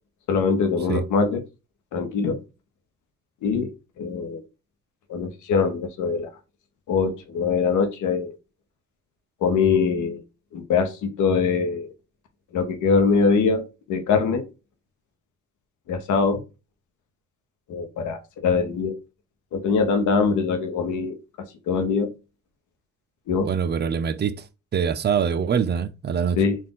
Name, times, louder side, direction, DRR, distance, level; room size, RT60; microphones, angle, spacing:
voice 1, 0.3-1.4 1.9-2.4 3.4-3.7 4.0-4.4 5.1-6.3 6.9-8.4 9.4-10.2 10.5-11.9 12.5-14.4 15.9-16.4 17.7-19.0 19.5-21.2 21.7-22.1 23.3-23.5 26.4-26.6, left 5 dB, 80° left, 1.0 m, -23 dB
voice 2, 23.4-24.5 24.7-26.4, right 7 dB, 35° right, 0.4 m, -24 dB
3.9 x 2.5 x 3.8 m
cardioid pair, 90°, 30 cm